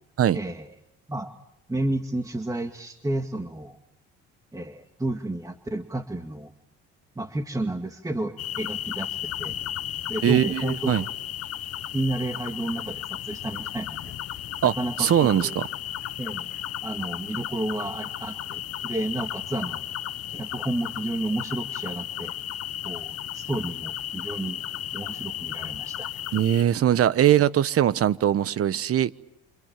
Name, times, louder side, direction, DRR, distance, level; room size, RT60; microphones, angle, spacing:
voice 1, 0.3-0.7 1.1-1.3 1.7-3.8 4.5-6.5 7.2-9.6 10.1-10.9 11.9-14.1 14.6-15.6 16.2-16.5 16.8-19.8 20.3-22.3 22.8-24.6 24.9-26.1, right 1 dB, 10° right, 2.1 m, -31 dB
sound 1, 8.4-26.6, left 12 dB, 50° left, 1.1 m, -34 dB
voice 2, 10.2-11.0 14.6-15.7 26.3-29.1, right 11 dB, 50° right, 1.2 m, -21 dB
28.0 x 27.5 x 7.5 m
supercardioid pair, 75°, 30 cm